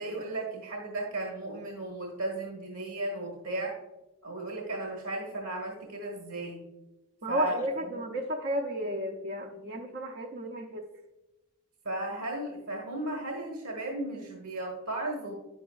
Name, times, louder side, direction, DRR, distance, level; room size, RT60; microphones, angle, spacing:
voice 1, 0.0-3.7 4.2-6.6 7.3-7.9 11.8-15.3, right 1 dB, 80° right, 0 dB, 1.3 m, -35 dB
voice 2, 7.2-10.9, right 1 dB, 45° right, 2 dB, 0.5 m, -32 dB
9.6 x 5.9 x 2.3 m, 1.0 s
head